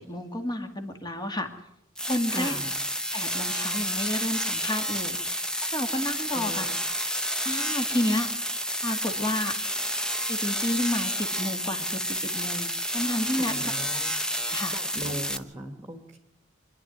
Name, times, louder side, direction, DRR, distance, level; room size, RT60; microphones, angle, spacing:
voice 1, 0.0-1.5 2.0-2.6 3.1-6.7 7.4-8.3 8.8-9.5 10.3-13.7 14.5-14.8, left 1 dB, 20° left, 5 dB, 1.9 m, -31 dB
sound 1, 2.0-15.4, equal, 5° left, 0.9 m, -30 dB
voice 2, 2.3-2.7 6.3-6.8 13.4-14.1 14.7-16.2, right 1 dB, 15° right, 4 dB, 1.7 m, -38 dB
25.5 x 11.0 x 9.3 m, 0.81 s
head